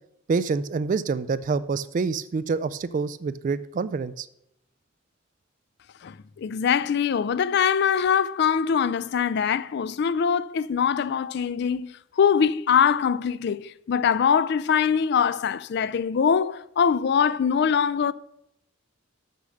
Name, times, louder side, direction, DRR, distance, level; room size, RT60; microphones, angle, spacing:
voice 1, 0.3-4.3, right 4 dB, 40° right, 0.3 m, -27 dB
voice 2, 6.0-11.9 12.2-18.1, left 7 dB, 55° left, 0.3 m, -23 dB
6.7 x 6.4 x 6.4 m
head